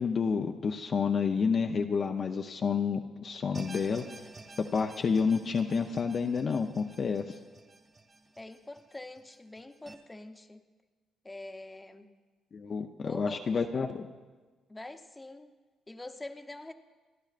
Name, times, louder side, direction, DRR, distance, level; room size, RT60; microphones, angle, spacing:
voice 1, 0.0-4.0 4.6-7.2 12.5-14.1, left 5 dB, 45° left, 4 dB, 0.6 m, -29 dB
sound 1, 3.5-9.9, right 3 dB, 35° right, 2.0 m, -51 dB
voice 2, 8.4-10.6 11.2-12.1 13.0-13.7 14.7-15.5 15.9-16.7, left 2 dB, 15° left, 6 dB, 0.8 m, -45 dB
27.5 x 12.0 x 2.5 m, 1.3 s
cardioid pair, 90°, 0 cm